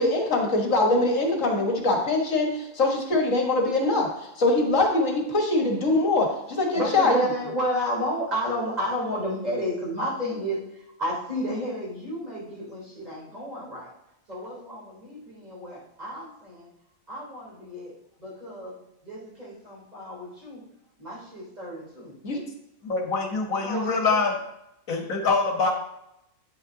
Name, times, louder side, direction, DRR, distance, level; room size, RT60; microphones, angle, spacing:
voice 1, 0.0-7.2 22.2-22.4, left 2 dB, 65° left, 1 dB, 1.9 m, -23 dB
voice 2, 6.7-13.9 14.3-16.7 17.1-17.9 18.2-20.6 21.0-22.1 23.6-24.2, equal, 30° right, -5 dB, 3.6 m, -31 dB
voice 3, 22.8-24.3 24.9-25.7, left 4 dB, 85° left, 3 dB, 1.6 m, -24 dB
9.6 x 8.8 x 2.7 m, 0.85 s
omnidirectional pair, 1.4 m